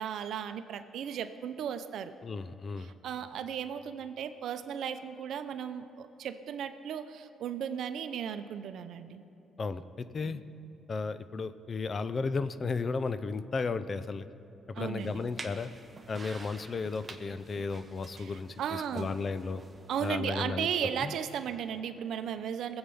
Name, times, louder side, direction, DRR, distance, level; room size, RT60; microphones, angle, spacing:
voice 1, 0.0-2.1 2.8-9.2 10.2-10.4 14.8-15.3 18.2-19.1 19.9-22.8, right 8 dB, 75° right, 10 dB, 0.7 m, -36 dB
voice 2, 2.2-2.9 9.6-10.4 10.9-14.3 14.8-15.7 16.1-19.6 20.0-21.1, left 4 dB, 40° left, 13 dB, 0.6 m, -34 dB
sound 1, 15.0-20.2, right 3 dB, 25° right, 1.2 m, -49 dB
20.5 x 8.1 x 5.6 m, 2.8 s
cardioid pair, 90°, 0 cm